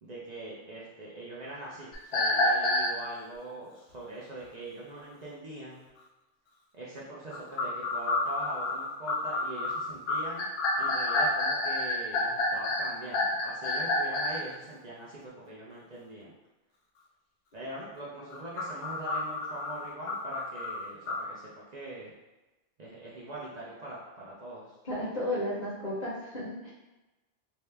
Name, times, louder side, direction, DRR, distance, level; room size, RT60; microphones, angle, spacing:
voice 1, 0.0-5.9 6.7-10.5 10.8-16.3 17.5-22.1 22.8-24.7, right 1 dB, 50° right, -6 dB, 0.6 m, -42 dB
sound 1, 1.9-2.9 7.3-14.4 18.3-21.2, left 2 dB, 80° left, 0.8 m, -29 dB
voice 2, 24.8-26.7, left 1 dB, 45° left, -6 dB, 0.8 m, -33 dB
2.8 x 2.2 x 3.2 m, 1.1 s
omnidirectional pair, 1.1 m